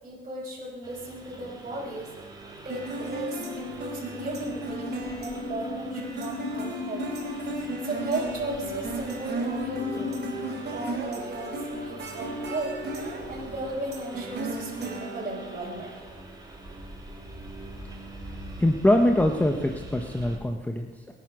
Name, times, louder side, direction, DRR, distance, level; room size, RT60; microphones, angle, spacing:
voice 1, 0.0-2.1 2.6-7.1 7.5-10.2 10.6-15.9, right 2 dB, 40° right, -6 dB, 5.0 m, -36 dB
Engine, 0.8-20.4, right 2 dB, 20° right, 4.0 m, -44 dB
sound 1, 2.7-15.9, right 2 dB, 55° right, 4.5 m, -36 dB
sound 2, 3.4-10.7, left 4 dB, 65° left, 1.5 m, -37 dB
voice 2, 18.6-21.1, left 1 dB, 5° left, 4 dB, 1.1 m, -23 dB
22.5 x 9.5 x 6.3 m, 1.4 s
cardioid pair, 90°, 20 cm